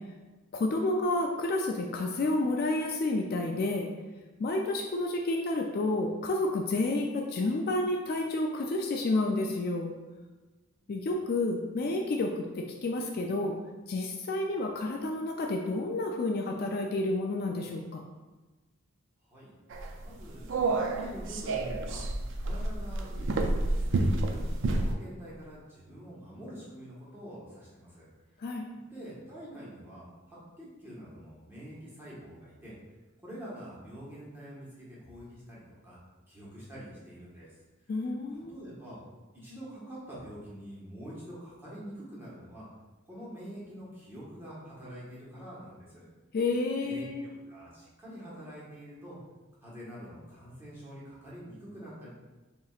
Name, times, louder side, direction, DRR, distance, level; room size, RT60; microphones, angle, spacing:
voice 1, 0.5-3.9 4.4-9.9 10.9-13.6 13.9-18.0 28.4-28.7 37.9-38.6 46.3-47.2, left 2 dB, 45° left, 1 dB, 0.3 m, -30 dB
sound 1, 19.7-24.9, right 2 dB, 60° right, 0.4 m, -29 dB
voice 2, 20.0-22.0 22.4-28.1 28.9-32.7 33.2-36.0 36.3-37.5 38.3-39.0 39.4-42.7 43.1-46.0 46.8-49.2 49.6-52.1, equal, 10° right, -8 dB, 1.4 m, -46 dB
7.0 x 2.8 x 2.4 m, 1.2 s
head